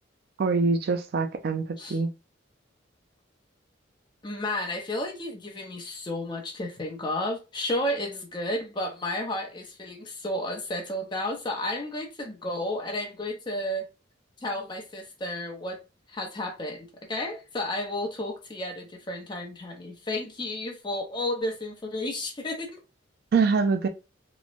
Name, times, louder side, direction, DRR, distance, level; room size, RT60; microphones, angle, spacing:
voice 1, 0.4-2.1 23.3-23.9, right 4 dB, 50° right, 0.4 m, -24 dB
voice 2, 4.2-13.9 14.4-15.8 16.1-22.8, left 1 dB, 25° left, 0.7 m, -32 dB
3.0 x 2.1 x 2.4 m
head